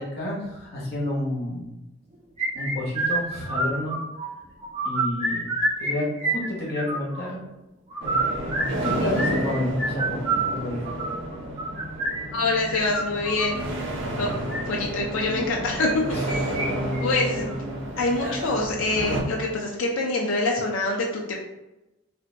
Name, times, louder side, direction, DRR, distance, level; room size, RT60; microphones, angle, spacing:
voice 1, 0.0-1.7 2.5-4.0 4.8-5.5 5.8-7.4 8.0-10.9 16.1-16.2 16.5-16.7, left 1 dB, 50° left, -4 dB, 0.9 m, -30 dB
sound 1, 2.4-4.3 4.6-5.9 6.2-7.2 7.9-13.5 14.3-14.6 15.8-16.7 16.9-17.0 17.5-17.6 18.2-18.5, right 2 dB, 35° right, 1.1 m, -28 dB
sound 2, 8.0-19.2, right 1 dB, 60° right, 0.6 m, -31 dB
voice 2, 12.3-13.6 14.2-14.3 14.7-16.5 17.0-17.5 18.0-21.3, left 2 dB, 70° left, -1 dB, 0.4 m, -25 dB
2.5 x 2.1 x 3.8 m, 0.98 s
head